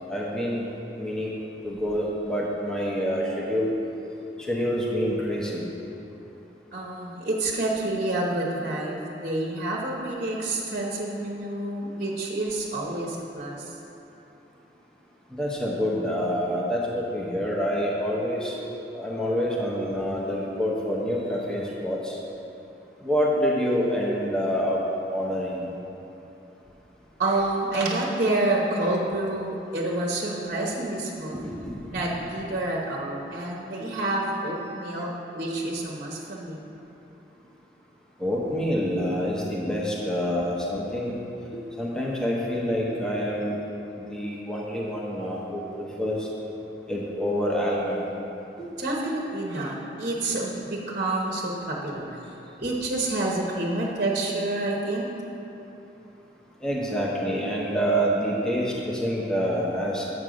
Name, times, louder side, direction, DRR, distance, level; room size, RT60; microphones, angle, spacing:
voice 1, 0.1-0.6 1.0-1.3 1.6-3.7 4.4-5.7 15.3-18.6 18.9-22.2 23.0-24.8 25.1-25.7 31.3-32.0 38.2-41.2 41.5-43.6 44.0-46.3 46.9-48.1 48.6-48.7 56.6-60.0, equal, 5° left, -5 dB, 0.9 m, -27 dB
voice 2, 6.7-13.6 27.2-31.4 31.9-36.6 48.8-52.1 52.6-55.1, right 2 dB, 45° right, -2 dB, 0.9 m, -28 dB
7.8 x 5.4 x 6.2 m, 2.9 s
head